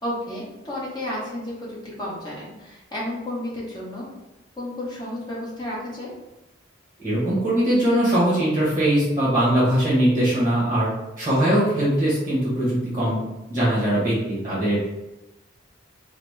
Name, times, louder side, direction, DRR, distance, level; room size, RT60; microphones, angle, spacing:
voice 1, 0.0-4.1 4.6-6.1, left 1 dB, 20° left, -6 dB, 0.9 m, -32 dB
voice 2, 7.0-10.9 11.2-13.2 13.5-14.9, right 1 dB, 15° right, -8 dB, 1.1 m, -21 dB
4.0 x 2.0 x 3.2 m, 1.0 s
head